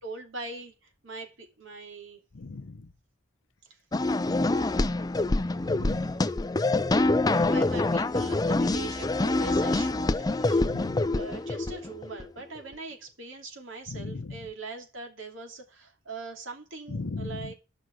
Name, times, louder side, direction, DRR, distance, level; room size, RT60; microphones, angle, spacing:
voice 1, 0.0-0.7 1.0-2.2 4.8-4.9 7.2-10.7 11.1-17.5, right 3 dB, 75° right, 2.9 m, -41 dB
voice 2, 2.3-2.7 5.6-6.1 10.6-11.0 13.9-14.4 16.9-17.5, left 3 dB, 80° left, 0.7 m, -36 dB
sound 1, 3.9-12.2, left 2 dB, 20° left, 0.5 m, -26 dB
11.5 x 6.0 x 6.4 m
head